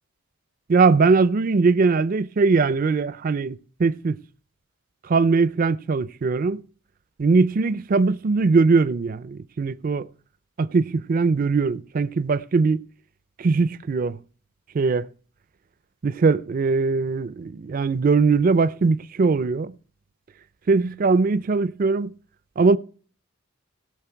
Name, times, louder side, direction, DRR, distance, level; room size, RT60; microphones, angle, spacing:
voice 1, 0.7-4.2 5.1-6.6 7.2-10.1 10.6-12.8 13.4-14.2 14.7-15.1 16.0-19.7 20.7-22.1 22.6-22.8, right 4 dB, 40° right, 0.4 m, -20 dB
17.0 x 6.4 x 4.5 m
head